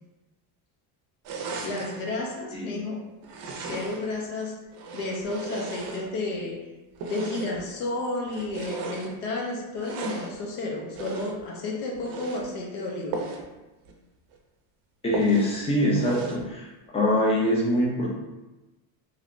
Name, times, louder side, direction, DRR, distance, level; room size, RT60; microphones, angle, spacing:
sound 1, 1.2-2.1 3.2-4.2 4.7-6.4 7.0-7.7 8.2-9.1 9.8-10.4 10.9-11.5 12.0-12.5 13.1-13.5 13.9-14.0 14.3-14.4 15.1-15.6 16.0-16.5, right 4 dB, 50° right, 0.5 m, -36 dB
voice 1, 1.6-3.0 3.5-4.5 4.9-6.6 7.0-13.2, left 2 dB, 75° left, -1 dB, 0.9 m, -32 dB
voice 2, 15.0-16.7 16.9-18.1, left 1 dB, 15° left, -3 dB, 0.4 m, -23 dB
3.2 x 2.9 x 2.5 m, 1.1 s
cardioid pair, 150°, 48 cm